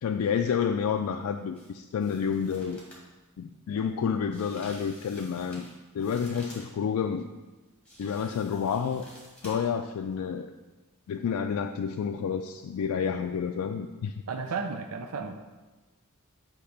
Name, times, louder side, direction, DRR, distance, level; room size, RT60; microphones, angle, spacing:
voice 1, 0.0-2.8 3.4-5.6 5.9-7.3 8.0-9.1 9.4-10.5 11.1-14.1, left 7 dB, 90° left, 5 dB, 0.3 m, -29 dB
sound 1, 1.5-1.7 2.0-3.1 4.3-6.7 7.8-9.8 10.1-10.2, equal, 5° left, 1.7 m, -50 dB
voice 2, 14.3-15.4, right 5 dB, 85° right, 6 dB, 0.5 m, -33 dB
8.4 x 2.9 x 5.8 m, 1.2 s
head